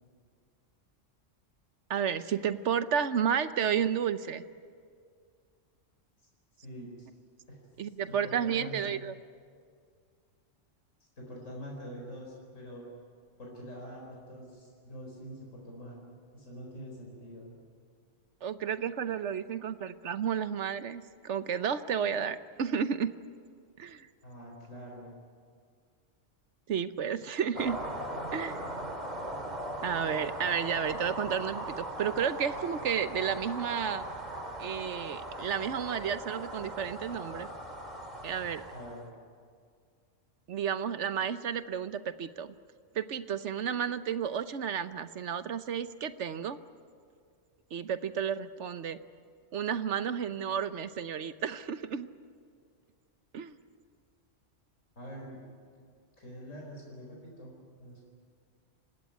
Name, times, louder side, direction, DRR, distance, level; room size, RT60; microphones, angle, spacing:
voice 1, 1.9-4.4 7.8-9.1 18.4-23.1 23.8-24.1 26.7-27.8 28.3-28.6 29.8-34.0 34.6-37.5 38.2-38.6 40.5-42.5 42.9-46.6 47.7-49.0 49.5-52.1 53.3-53.5, right 8 dB, 65° right, 12 dB, 1.1 m, -32 dB
voice 2, 6.5-7.1 7.5-7.6 8.1-8.9 11.2-12.9 13.4-16.1 16.3-17.5 24.2-25.1 38.7-39.1 55.0-55.4 56.2-57.5 57.8-58.0, equal, 80° left, -2 dB, 5.2 m, -45 dB
sound 1, 27.5-39.1, right 1 dB, 35° right, 2.5 m, -39 dB
28.0 x 16.5 x 9.4 m, 2.1 s
omnidirectional pair, 1.3 m